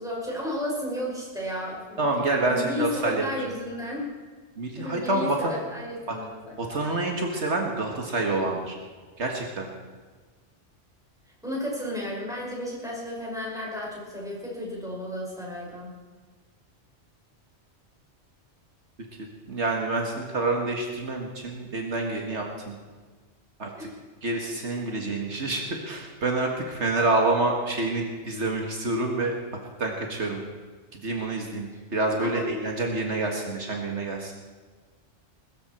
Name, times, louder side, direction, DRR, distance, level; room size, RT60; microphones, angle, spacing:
voice 1, 0.0-2.1 2.5-4.0 4.7-6.8 11.4-15.9 23.7-23.9 32.2-32.5, equal, 5° right, -5 dB, 5.9 m, -33 dB
voice 2, 2.0-3.2 4.6-5.5 6.1-6.2 6.6-8.8 9.2-9.7 19.5-22.8 23.6-23.9 24.2-29.3 29.8-30.4 30.9-34.3, right 2 dB, 70° right, 1 dB, 2.0 m, -27 dB
21.0 x 14.0 x 4.4 m, 1.4 s
omnidirectional pair, 1.2 m